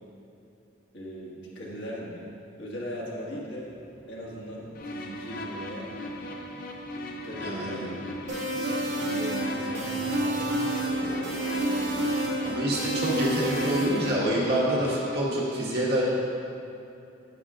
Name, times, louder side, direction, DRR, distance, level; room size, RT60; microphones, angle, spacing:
voice 1, 0.9-3.7 4.1-5.9 7.1-8.0 8.5-10.6 10.9-11.8, equal, 65° left, -5 dB, 1.7 m, -39 dB
Motorcycle, 2.6-15.0, equal, 80° left, 1.4 m, -45 dB
sound 1, 4.7-15.2, left 1 dB, 45° left, 0.6 m, -38 dB
voice 2, 7.4-7.9 12.4-16.0, right 1 dB, 50° right, -6 dB, 1.5 m, -27 dB
sound 2, 8.3-14.1, right 1 dB, 75° right, 1.9 m, -29 dB
10.5 x 8.2 x 2.4 m, 2.7 s
head